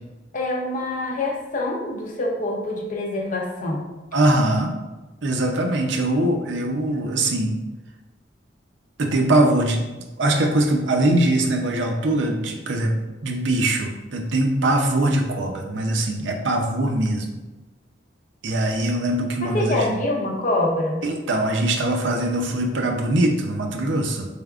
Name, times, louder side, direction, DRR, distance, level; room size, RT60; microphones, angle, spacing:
voice 1, 0.3-3.8 19.4-21.0, left 1 dB, 45° left, 1 dB, 0.7 m, -25 dB
voice 2, 4.1-4.7 5.2-7.5 9.0-9.8 10.2-12.9 13.2-17.2 18.4-20.0 21.0-24.3, right 1 dB, 75° right, 2 dB, 0.6 m, -22 dB
4.5 x 3.4 x 2.4 m, 1.1 s
head